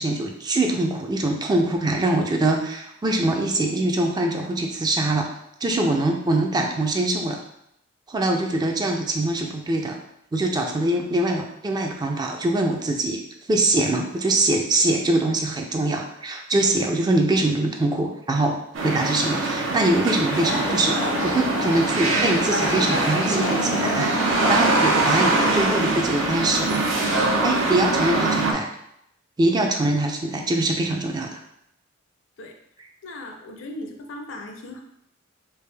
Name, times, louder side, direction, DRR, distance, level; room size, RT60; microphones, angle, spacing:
voice 1, 0.0-5.3 5.6-7.4 8.1-10.0 10.3-13.2 13.5-18.6 18.8-26.8 27.4-28.7 29.4-31.4, right 2 dB, 20° right, 2 dB, 0.4 m, -23 dB
sound 1, 18.7-28.5, right 2 dB, 75° right, 0.6 m, -23 dB
sound 2, 20.3-25.6, left 1 dB, 90° left, 1.0 m, -29 dB
voice 2, 33.0-34.8, left 1 dB, 70° left, 3 dB, 0.6 m, -37 dB
3.4 x 2.4 x 3.3 m, 0.77 s
head